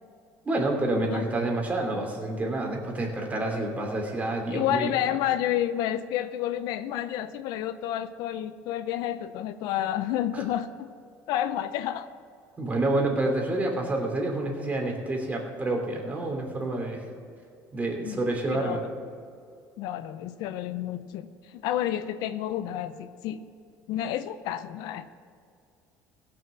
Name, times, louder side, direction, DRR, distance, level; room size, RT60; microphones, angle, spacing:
voice 1, 0.4-5.1 10.3-10.4 12.6-17.0 17.7-18.8, right 2 dB, 20° right, 1 dB, 2.9 m, -28 dB
voice 2, 4.5-10.9 11.3-12.1 18.0-18.9 19.8-23.4 23.9-25.2, left 11 dB, 75° left, 12 dB, 0.6 m, -30 dB
16.5 x 6.3 x 7.3 m, 2.4 s
supercardioid pair, 105°, 7 cm